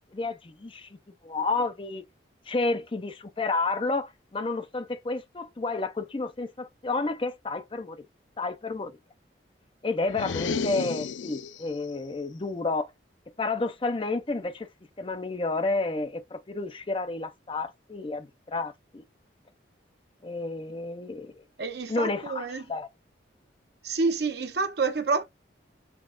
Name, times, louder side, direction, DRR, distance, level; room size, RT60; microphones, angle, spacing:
voice 1, 0.1-0.9 1.2-2.0 2.5-8.0 8.4-8.9 9.8-12.9 13.4-14.7 15.0-19.0 20.2-21.4 21.9-22.9, left 3 dB, 30° left, 0.5 m, -30 dB
sound 1, 10.1-11.7, left 5 dB, 85° left, 0.4 m, -32 dB
voice 2, 21.6-22.6 23.8-25.2, right 4 dB, 60° right, 0.8 m, -28 dB
5.8 x 2.3 x 2.3 m
head